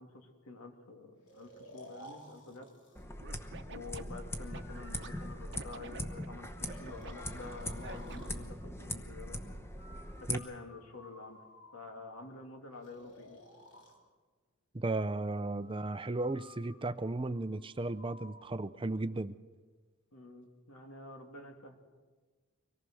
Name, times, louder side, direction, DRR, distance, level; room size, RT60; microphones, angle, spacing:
voice 1, 0.0-2.7 3.7-9.4 10.2-11.4 11.7-13.4 20.1-21.8, left 3 dB, 85° left, 3 dB, 2.7 m, -49 dB
Breathing, 1.3-3.1 4.4-6.1 6.6-8.4 9.8-12.0 12.8-14.0 15.6-18.5, left 1 dB, 55° left, 3.3 m, -55 dB
sound 1, 2.9-10.4, left 1 dB, 10° left, 1.0 m, -41 dB
Scratching (performance technique), 3.2-5.1 5.5-7.1 7.8-8.5, right 4 dB, 55° right, 0.9 m, -48 dB
voice 2, 14.7-19.4, right 2 dB, 25° right, 13 dB, 0.5 m, -35 dB
24.5 x 18.5 x 6.3 m, 1.4 s
head